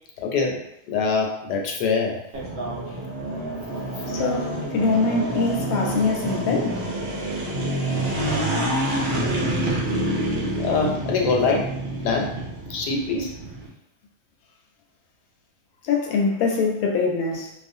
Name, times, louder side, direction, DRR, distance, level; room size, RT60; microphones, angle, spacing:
voice 1, 0.2-0.6 0.9-2.2 10.6-11.7 12.0-12.3 12.7-13.3, left 4 dB, 85° left, 0 dB, 1.2 m, -23 dB
sound 1, 2.3-13.7, right 1 dB, 65° right, 0.6 m, -27 dB
voice 2, 4.1-6.8 15.8-17.5, left 4 dB, 70° left, -1 dB, 0.9 m, -23 dB
2.4 x 2.3 x 2.6 m, 0.82 s
omnidirectional pair, 1.7 m